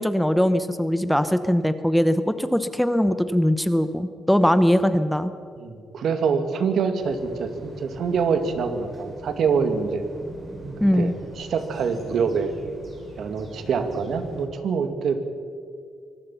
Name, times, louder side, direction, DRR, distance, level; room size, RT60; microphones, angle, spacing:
voice 1, 0.0-5.3 10.8-11.1, equal, 5° left, 11 dB, 0.9 m, -21 dB
voice 2, 5.6-10.0 10.9-12.5 13.2-15.2, right 5 dB, 65° right, 7 dB, 2.2 m, -25 dB
sound 1, 7.0-14.5, right 2 dB, 45° right, 5.0 m, -41 dB
24.5 x 18.5 x 5.7 m, 2.3 s
cardioid pair, 90°, 0 cm